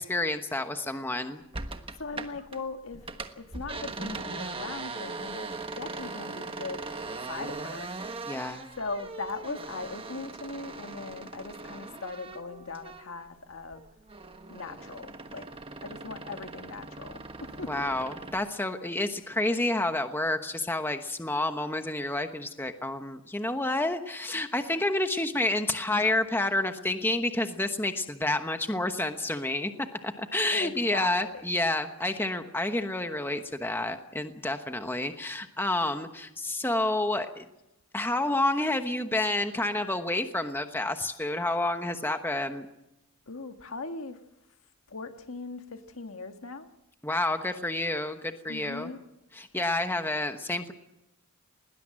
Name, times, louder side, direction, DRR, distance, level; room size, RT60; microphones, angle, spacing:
voice 1, 0.0-1.4 8.3-8.6 17.7-37.4 37.9-42.7 47.0-48.9 49.4-50.7, left 2 dB, 10° left, 1.1 m, -29 dB
sound 1, 1.5-2.6 2.9-13.3 13.6-18.5, right 3 dB, 25° right, 1.3 m, -40 dB
voice 2, 2.0-7.9 8.8-13.8 14.5-15.5 15.8-17.8 30.5-31.5 43.3-44.2 44.9-46.7 48.5-49.0, left 3 dB, 70° left, 1.6 m, -39 dB
20.5 x 19.5 x 7.6 m
head